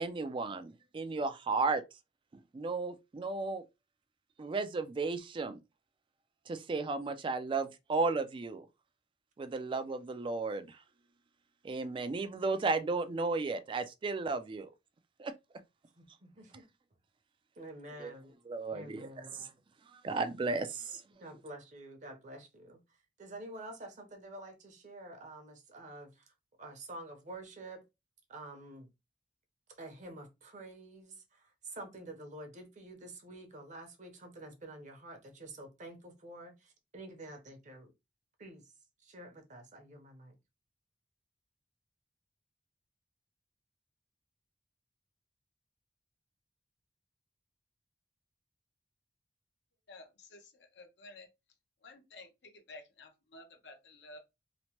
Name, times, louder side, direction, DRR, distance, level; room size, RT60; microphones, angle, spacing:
voice 1, 0.0-1.8 2.5-3.6 4.4-5.6 6.5-8.6 9.4-10.8 11.6-14.7 15.2-15.3 18.0-18.1 18.5-19.4 19.9-21.0, right 3 dB, 30° right, 0.3 m, -34 dB
voice 2, 16.0-16.6 17.6-18.3 18.7-19.5 21.2-22.8 23.2-26.3 26.6-27.8 28.3-28.9 29.8-37.9 38.4-38.7 39.0-40.4, right 1 dB, 45° right, 0.7 m, -48 dB
voice 3, 49.9-51.3 51.8-54.2, left 2 dB, 80° left, 0.7 m, -53 dB
2.9 x 2.1 x 2.9 m
head